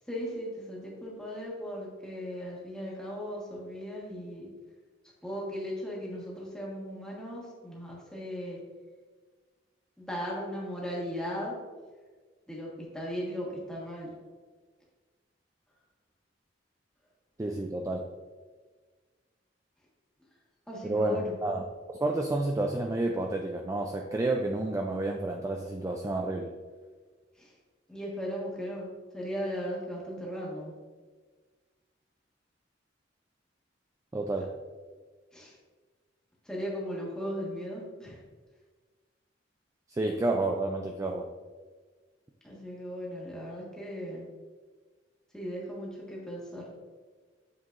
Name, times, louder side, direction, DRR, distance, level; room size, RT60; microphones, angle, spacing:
voice 1, 0.1-4.5 5.2-8.6 10.0-11.5 12.5-14.1 20.7-21.3 27.4-27.5 27.9-28.9 29.1-30.7 35.3-35.5 36.4-38.2 42.4-44.2 45.3-46.6, equal, 5° left, -5 dB, 1.4 m, -37 dB
voice 2, 17.4-18.1 20.8-21.6 21.9-26.5 34.1-34.5 39.9-41.3, right 2 dB, 15° right, 2 dB, 0.3 m, -30 dB
8.2 x 4.6 x 2.5 m, 1.4 s
head